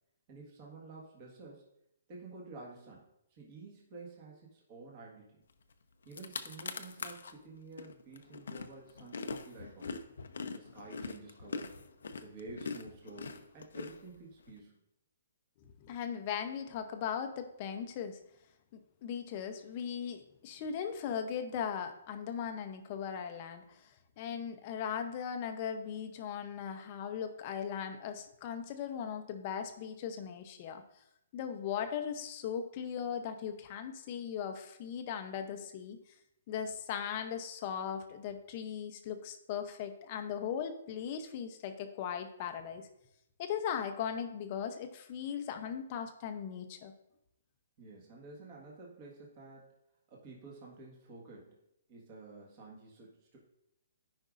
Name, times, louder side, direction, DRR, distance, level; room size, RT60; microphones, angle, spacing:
voice 1, 0.3-1.6 2.1-5.4 6.0-10.0 10.5-11.8 12.2-14.8 47.8-49.7 50.1-51.5 51.9-53.4, right 3 dB, 30° right, -3 dB, 1.6 m, -51 dB
sound 1, 5.7-5.8 6.0-7.3 7.8-14.5, left 4 dB, 80° left, 0.6 m, -42 dB
voice 2, 15.8-18.2 18.7-30.8 31.3-36.0 36.5-42.9 43.4-46.9, left 8 dB, 30° left, 7 dB, 0.6 m, -38 dB
13.5 x 5.2 x 2.5 m, 0.81 s
hypercardioid pair, 170°, 0 cm